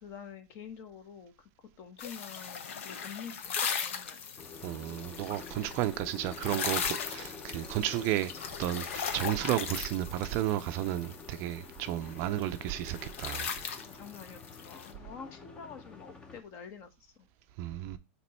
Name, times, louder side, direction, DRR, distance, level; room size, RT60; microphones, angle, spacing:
voice 1, 0.0-4.3 13.8-17.3, left 7 dB, 35° left, 1.0 m, -47 dB
sound 1, 2.0-14.9, left 7 dB, 90° left, 0.9 m, -38 dB
sound 2, 4.4-16.4, left 4 dB, 15° left, 0.6 m, -49 dB
voice 2, 4.6-8.3 8.6-13.5 17.6-18.0, right 13 dB, 35° right, 0.4 m, -33 dB
7.5 x 3.0 x 4.2 m
supercardioid pair, 165°, 7 cm